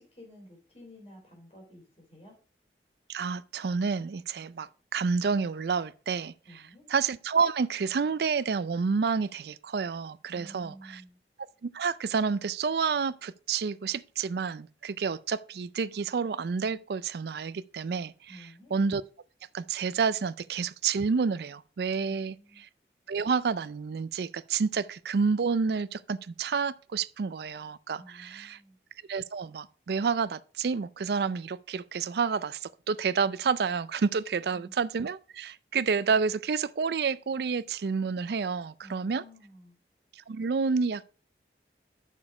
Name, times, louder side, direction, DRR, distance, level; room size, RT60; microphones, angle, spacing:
voice 1, 0.0-2.3 6.4-6.8 10.3-11.2 18.3-18.7 22.0-22.6 28.0-28.8 34.5-34.7 38.8-39.8, equal, 35° left, 3.7 m, -52 dB
voice 2, 3.1-6.3 6.9-11.0 11.6-19.0 19.5-22.7 23.1-28.6 29.1-39.2 40.3-41.1, right 5 dB, 65° right, 0.4 m, -29 dB
6.9 x 6.4 x 4.8 m
head